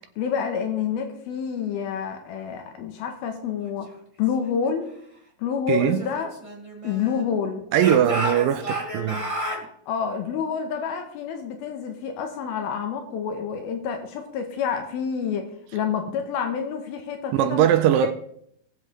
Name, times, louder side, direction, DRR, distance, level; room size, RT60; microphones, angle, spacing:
voice 1, 0.2-3.9 4.2-4.9 5.4-6.3 6.8-7.6 9.9-17.7, left 7 dB, 80° left, 2.9 m, -28 dB
voice 2, 5.7-6.1 7.7-9.3 17.3-18.1, right 10 dB, 80° right, 2.1 m, -20 dB
Speech / Shout, 5.8-7.3 7.7-9.6, right 1 dB, 25° right, 0.6 m, -31 dB
20.0 x 7.6 x 3.3 m
omnidirectional pair, 4.4 m